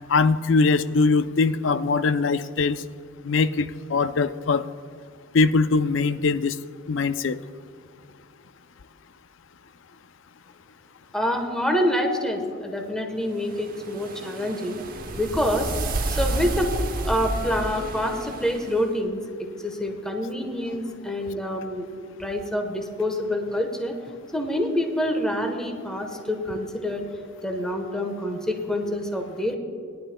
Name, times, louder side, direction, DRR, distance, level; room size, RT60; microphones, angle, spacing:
voice 1, 0.1-2.8 3.2-4.6 5.3-6.6 6.9-7.4, left 4 dB, 70° left, 13 dB, 0.5 m, -21 dB
voice 2, 11.1-14.8 15.1-15.7 16.1-16.7 17.0-19.2 19.6-21.9 22.2-23.9 24.3-27.0 27.4-29.6, left 1 dB, 5° left, 3 dB, 1.1 m, -26 dB
sound 1, 13.5-18.8, right 2 dB, 45° right, 0.9 m, -30 dB
21.0 x 11.0 x 2.2 m, 2.3 s
head